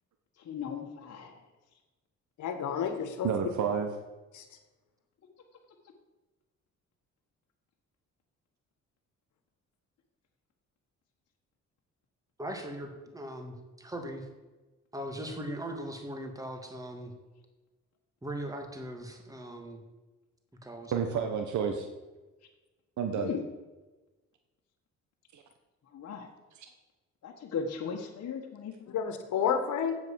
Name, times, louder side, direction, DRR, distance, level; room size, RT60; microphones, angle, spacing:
voice 1, 0.4-1.4 23.1-23.4 25.9-26.3 27.2-29.0, left 6 dB, 55° left, 0 dB, 1.5 m, -37 dB
voice 2, 2.4-3.5 4.3-4.5 28.9-30.0, left 7 dB, 75° left, 8 dB, 1.5 m, -30 dB
voice 3, 3.2-3.9 20.9-21.9 23.0-23.3 25.3-25.4, right 7 dB, 70° right, 6 dB, 1.1 m, -30 dB
voice 4, 12.4-14.3 14.9-17.1 18.2-19.8 20.6-21.3, right 1 dB, 10° right, 4 dB, 1.9 m, -39 dB
7.8 x 7.7 x 7.5 m, 1.2 s
cardioid pair, 90°, 30 cm